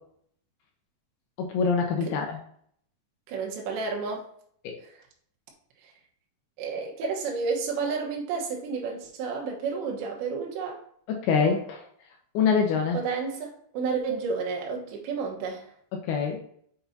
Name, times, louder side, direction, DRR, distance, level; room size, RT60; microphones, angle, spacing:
voice 1, 1.4-2.4 4.6-4.8 11.1-11.8 12.3-13.0 15.9-16.4, left 5 dB, 80° left, 2 dB, 2.3 m, -25 dB
voice 2, 3.3-4.3 4.8-5.0 5.8-5.9 6.6-10.8 12.9-15.7, right 5 dB, 80° right, 0 dB, 3.5 m, -31 dB
7.7 x 5.7 x 2.7 m, 0.63 s
omnidirectional pair, 5.2 m